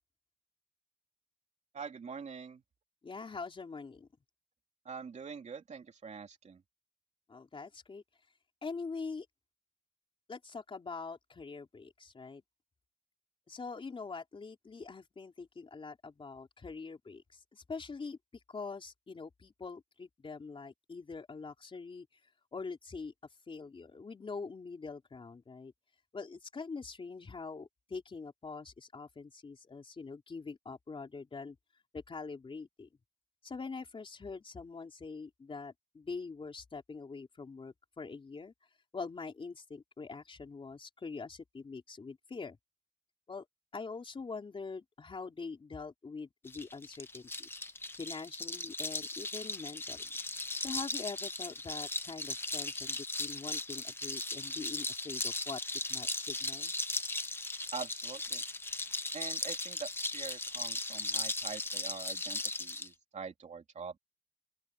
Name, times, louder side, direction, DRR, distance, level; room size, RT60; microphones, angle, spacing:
voice 1, 1.7-2.6 4.8-6.6 57.7-58.4 59.1-63.9, right 5 dB, 75° right, 3.1 m, -44 dB
voice 2, 3.0-4.1 7.3-8.0 8.6-9.3 10.3-12.4 13.5-18.2 18.5-22.2 22.5-23.1 23.5-25.7 26.1-31.6 31.9-32.9 33.4-38.5 38.9-42.6 43.3-43.5 43.7-47.5 48.0-50.1 50.6-55.6 55.9-56.7, left 4 dB, 45° left, 3.8 m, -44 dB
sound 1, 46.5-62.9, left 2 dB, 20° left, 0.8 m, -37 dB
open air
wide cardioid pair, 165°, 12 cm